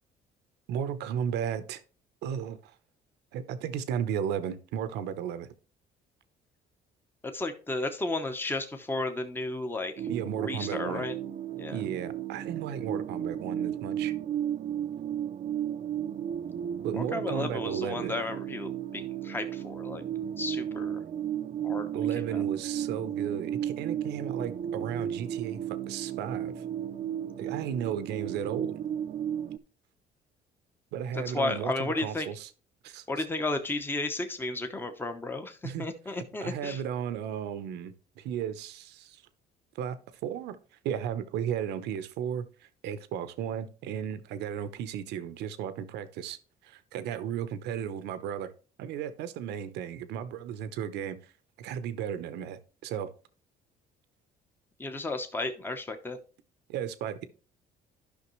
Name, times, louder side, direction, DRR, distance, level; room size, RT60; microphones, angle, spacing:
voice 1, 0.7-1.8 2.2-2.7 3.3-5.5 10.1-11.1 11.7-14.1 16.8-18.1 21.9-26.6 27.4-28.8 30.9-32.5 32.8-33.2 35.6-39.2 39.7-40.6 40.8-46.4 46.6-48.5 48.8-51.2 51.6-53.1 56.7-57.3, right 9 dB, 85° right, 0.9 m, -35 dB
voice 2, 7.2-9.9 10.4-11.2 11.6-11.8 16.9-20.0 20.4-21.0 21.6-21.9 22.2-22.4 31.1-32.3 33.1-36.8 54.8-56.2, left 2 dB, 10° left, 0.9 m, -33 dB
sound 1, 10.0-29.6, right 10 dB, 45° right, 0.5 m, -34 dB
11.5 x 5.8 x 3.1 m
cardioid pair, 110°, 17 cm